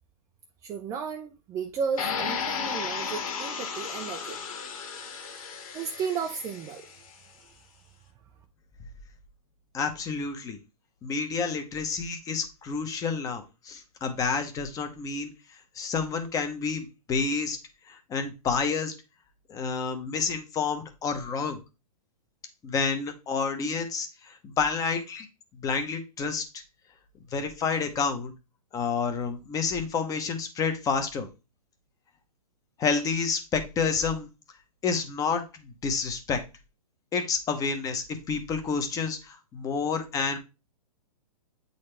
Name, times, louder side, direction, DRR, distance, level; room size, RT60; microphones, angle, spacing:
voice 1, 0.6-4.4 5.7-6.9, right 6 dB, 15° right, 0.4 m, -33 dB
sound 1, 2.0-7.0, left 6 dB, 60° left, 1.8 m, -34 dB
voice 2, 9.7-10.6 11.0-15.3 15.8-17.6 17.9-18.9 19.5-21.6 22.6-25.3 25.6-26.4 27.3-28.3 28.7-31.3 32.8-34.3 34.8-36.4 37.1-40.4, left 5 dB, 15° left, 0.9 m, -29 dB
8.5 x 4.0 x 3.3 m
hypercardioid pair, 140°, 20 cm